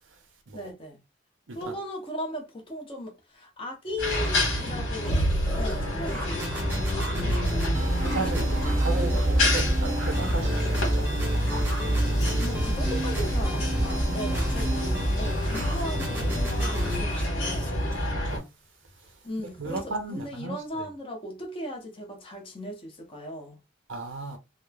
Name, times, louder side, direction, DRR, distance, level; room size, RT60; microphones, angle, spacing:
voice 1, 0.5-1.0 1.5-5.2 5.6-7.6 12.4-17.8 19.2-23.6, left 1 dB, 25° left, 0.7 m, -37 dB
sound 1, 3.9-13.7 14.0-18.4 18.9-19.1 19.4-20.2, equal, 5° left, 0.9 m, -43 dB
sound 2, 4.0-18.4, equal, 70° left, 1.3 m, -27 dB
sound 3, 6.3-17.0, equal, 10° right, 0.6 m, -30 dB
voice 2, 7.7-11.1 12.1-12.5 18.2-18.6 19.6-20.9 23.9-24.4, right 3 dB, 70° right, 0.6 m, -35 dB
3.0 x 2.0 x 2.3 m
head